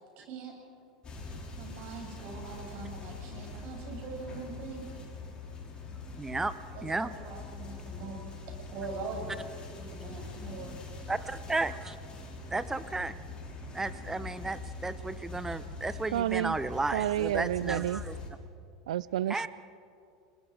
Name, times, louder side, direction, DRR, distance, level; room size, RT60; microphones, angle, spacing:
voice 1, 0.2-0.5 1.6-4.9 6.7-10.7, right 4 dB, 55° right, 0 dB, 7.3 m, -42 dB
sound 1, 1.0-18.3, left 3 dB, 25° left, 5.7 m, -43 dB
voice 2, 6.2-6.5 6.8-7.1 11.1-11.9 12.5-13.2 13.7-18.1 19.3-19.5, right 3 dB, 10° right, 14 dB, 0.9 m, -33 dB
voice 3, 16.1-16.6 16.9-18.0 18.9-19.5, right 12 dB, 80° right, 19 dB, 0.4 m, -30 dB
29.5 x 20.0 x 5.0 m, 2.5 s
hypercardioid pair, 95°, 4 cm